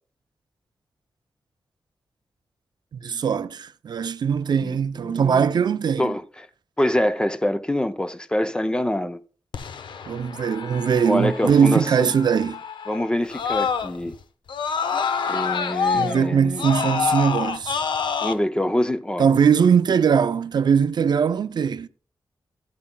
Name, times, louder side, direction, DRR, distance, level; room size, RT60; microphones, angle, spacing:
voice 1, 2.9-6.1 10.1-12.6 15.9-17.8 19.2-21.9, right 7 dB, 60° right, 0.4 m, -21 dB
voice 2, 5.0-5.5 6.0-6.2 6.8-9.2 11.0-12.1 12.9-14.1 15.3-16.6 18.2-19.3, left 1 dB, 10° left, 0.5 m, -25 dB
Screaming, 9.5-14.1 14.5-18.3, left 6 dB, 75° left, 0.6 m, -27 dB
13.5 x 12.5 x 2.2 m
wide cardioid pair, 150°, 8 cm